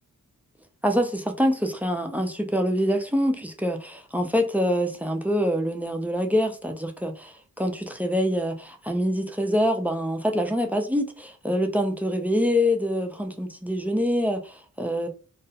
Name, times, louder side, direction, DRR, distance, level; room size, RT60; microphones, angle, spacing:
voice 1, 0.8-15.1, equal, 5° right, 0.3 m, -25 dB
2.3 x 2.0 x 2.7 m
wide cardioid pair, 50°, 35 cm